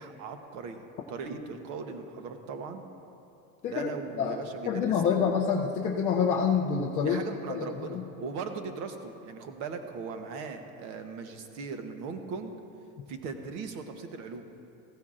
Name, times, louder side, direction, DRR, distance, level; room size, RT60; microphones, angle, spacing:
voice 1, 0.0-2.9 3.6-5.2 7.0-12.5 13.1-14.5, right 4 dB, 40° right, 6 dB, 1.0 m, -39 dB
voice 2, 4.7-7.2 7.5-7.6 7.9-8.0, left 6 dB, 20° left, -2 dB, 0.4 m, -26 dB
16.0 x 16.0 x 2.5 m, 2.8 s
supercardioid pair, 160°, 42 cm